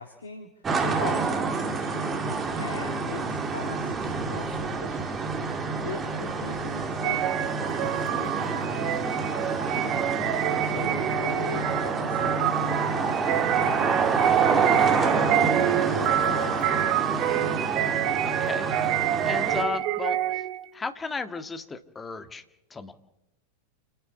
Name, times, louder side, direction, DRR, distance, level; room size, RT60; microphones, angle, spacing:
voice 1, 0.0-2.2 2.5-5.0 5.8-9.2 9.5-10.0 10.6-13.9 14.3-17.4, left 4 dB, 70° left, 4 dB, 2.3 m, -41 dB
sound 1, 0.6-19.6, right 4 dB, 20° right, 2.6 m, -28 dB
sound 2, 7.0-20.7, right 12 dB, 40° right, 1.4 m, -27 dB
voice 2, 10.5-10.9 18.2-20.5 20.7-22.4 22.7-22.9, left 4 dB, 15° left, 9 dB, 1.8 m, -35 dB
28.5 x 11.0 x 8.5 m, 0.88 s
figure-of-eight pair, 90°, 0 cm